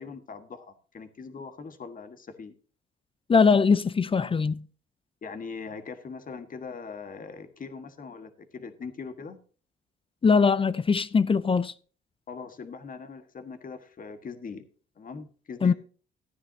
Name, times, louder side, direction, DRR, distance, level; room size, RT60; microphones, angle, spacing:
voice 1, 0.0-2.5 5.2-9.4 12.3-14.7 15.0-15.7, left 5 dB, 45° left, 1.6 m, -41 dB
voice 2, 3.3-4.6 10.2-11.7 15.6-15.7, left 5 dB, 25° left, 0.5 m, -21 dB
14.5 x 9.7 x 2.7 m
cardioid pair, 90°, 20 cm